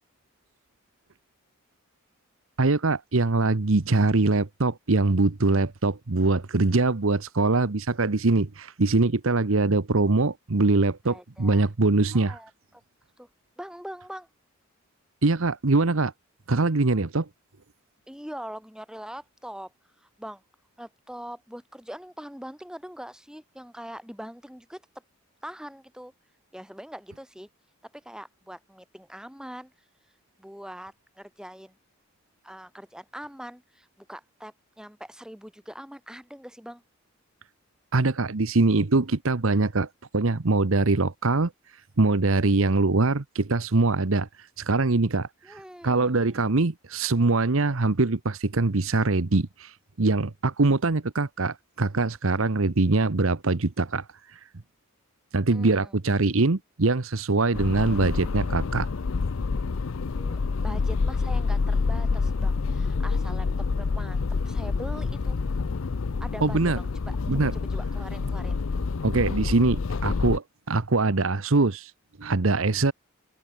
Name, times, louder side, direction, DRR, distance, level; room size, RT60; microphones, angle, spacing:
voice 1, 2.6-12.4 15.2-16.1 16.5-17.3 37.9-39.9 40.1-41.5 42.0-44.3 44.6-45.6 45.8-54.0 55.3-58.9 66.4-66.8 67.3-67.5 69.0-71.9 72.2-72.9, right 3 dB, 70° right, 1.0 m, -23 dB
voice 2, 11.0-11.7 12.1-12.8 13.2-13.3 13.6-14.3 18.1-19.7 20.0-20.4 20.8-24.8 25.4-26.1 26.5-27.5 27.9-29.7 30.4-31.8 32.4-36.8 45.4-46.4 55.5-55.9 60.1-63.5 63.7-65.4 66.2-68.6, equal, 5° right, 5.6 m, -42 dB
sound 1, 57.5-70.4, left 4 dB, 65° left, 0.5 m, -27 dB
open air
head